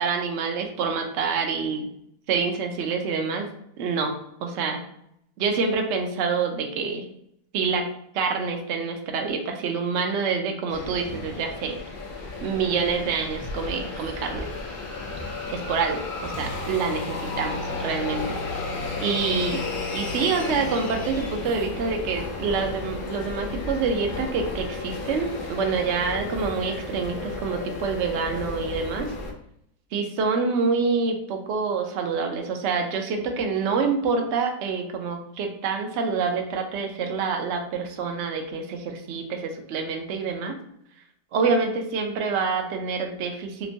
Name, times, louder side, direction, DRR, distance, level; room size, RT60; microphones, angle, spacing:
voice 1, 0.0-1.9 2.3-3.5 3.8-4.1 4.4-4.8 5.4-7.1 7.5-7.9 8.1-11.8 12.4-14.5 15.2-18.4 19.0-19.6 19.9-29.1 29.9-40.5 41.3-43.7, right 5 dB, 70° right, 3 dB, 0.6 m, -27 dB
sound 1, 10.7-29.3, left 3 dB, 70° left, 0.5 m, -33 dB
sound 2, 16.3-22.6, left 2 dB, 85° left, 1.2 m, -38 dB
3.3 x 2.9 x 2.6 m, 0.74 s
omnidirectional pair, 1.7 m